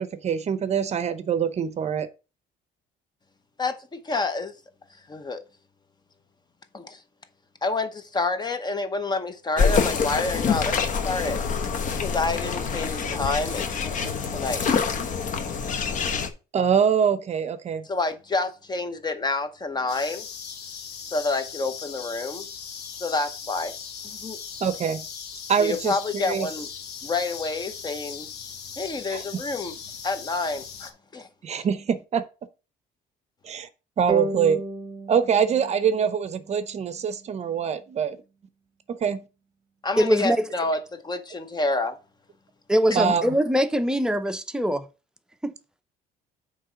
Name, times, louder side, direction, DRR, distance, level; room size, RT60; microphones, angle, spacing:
voice 1, 0.0-2.1 16.1-16.2 16.5-17.8 24.6-25.0 25.5-25.9 26.2-26.5 29.1-29.2 31.4-32.2 33.4-33.7 34.0-34.6 35.1-38.2 38.9-39.2 42.9-43.2, right 7 dB, 40° right, 0.6 m, -24 dB
voice 2, 3.6-4.5 5.1-5.4 6.7-7.0 7.6-11.4 11.9-14.6 17.8-20.3 21.1-22.5 23.0-23.7 24.0-24.4 25.6-26.7 27.0-28.3 28.8-29.8 30.0-31.3 31.6-31.7 39.8-42.0, left 3 dB, 25° left, 0.8 m, -28 dB
sound 1, 9.6-16.3, left 5 dB, 50° left, 1.0 m, -26 dB
sound 2, 19.9-30.9, left 7 dB, 75° left, 1.1 m, -39 dB
sound 3, 34.1-37.4, right 1 dB, 25° right, 1.1 m, -34 dB
voice 3, 40.0-40.5 42.7-44.9 45.4-45.5, equal, 5° right, 0.6 m, -22 dB
7.6 x 3.2 x 5.6 m
cardioid pair, 110°, 17 cm